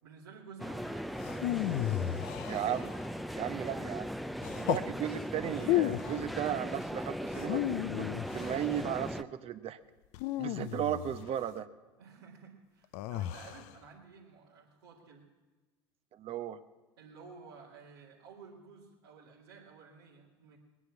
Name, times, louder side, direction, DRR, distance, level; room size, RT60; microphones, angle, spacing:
voice 1, 0.0-1.2 3.5-3.8 4.6-4.7 12.0-15.3 17.0-20.6, right 5 dB, 85° right, -6 dB, 2.3 m, -53 dB
sound 1, 0.6-9.2, equal, ahead, 0.5 m, -38 dB
sound 2, 1.2-3.2 4.4-4.9 5.6-6.3 7.3-8.7 10.1-11.4 12.9-13.7, left 14 dB, 65° left, 0.5 m, -33 dB
voice 2, 2.5-2.9 3.3-4.1 4.6-7.6 7.9-9.8 10.4-11.7 16.2-16.6, right 10 dB, 50° right, 11 dB, 0.9 m, -35 dB
20.5 x 9.8 x 6.0 m, 1.2 s
hypercardioid pair, 75°, 13 cm